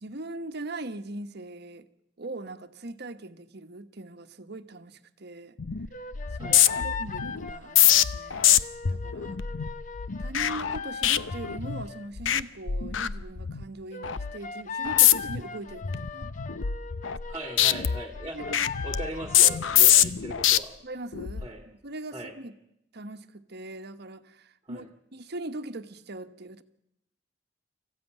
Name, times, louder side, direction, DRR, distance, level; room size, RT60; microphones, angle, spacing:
voice 1, 0.0-1.9 2.2-5.6 6.3-8.6 8.9-9.4 10.2-16.4 18.3-18.7 20.8-22.5 22.9-26.6, right 2 dB, 60° right, 1.2 m, -40 dB
sound 1, 5.6-5.9 6.1-11.9 12.2-12.4 12.7-13.6 14.0-14.3 14.8-15.4 15.8-17.3 17.6-20.6 21.1-21.5, left 11 dB, 85° left, 0.7 m, -24 dB
sound 2, 5.9-12.1 13.9-20.1, left 5 dB, 45° left, 1.0 m, -39 dB
voice 2, 6.4-6.9 17.3-18.6 18.8-20.8 21.4-21.7 22.1-22.4 24.7-24.9, right 1 dB, 20° right, 1.9 m, -39 dB
25.0 x 15.0 x 9.2 m
head